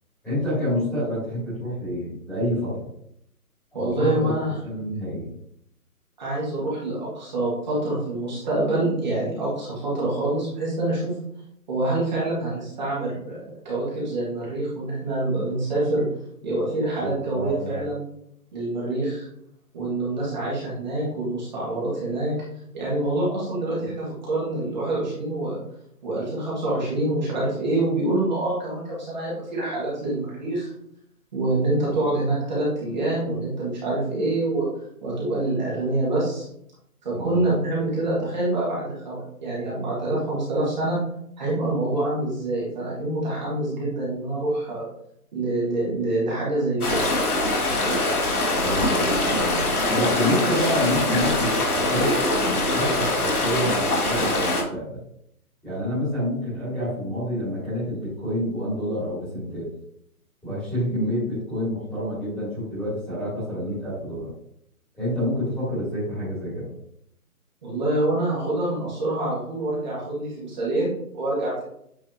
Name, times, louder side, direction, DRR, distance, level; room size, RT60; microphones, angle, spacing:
voice 1, 0.2-2.9 3.7-5.3 17.0-17.8 37.1-37.4 48.6-52.2 52.4-55.0 55.6-59.7 60.4-64.3 64.9-66.6, equal, ahead, -12 dB, 2.2 m, -28 dB
voice 2, 3.7-4.6 6.2-11.1 11.7-16.1 16.4-18.0 18.5-19.3 19.7-22.4 22.7-25.6 26.0-30.7 31.3-34.7 35.0-36.5 37.0-41.0 41.4-44.9 45.3-47.0 67.6-71.6, right 2 dB, 30° right, -7 dB, 1.9 m, -26 dB
sound 1, 46.8-54.6, left 1 dB, 70° left, 2.1 m, -23 dB
8.5 x 4.2 x 2.8 m, 0.73 s
hypercardioid pair, 165°, 46 cm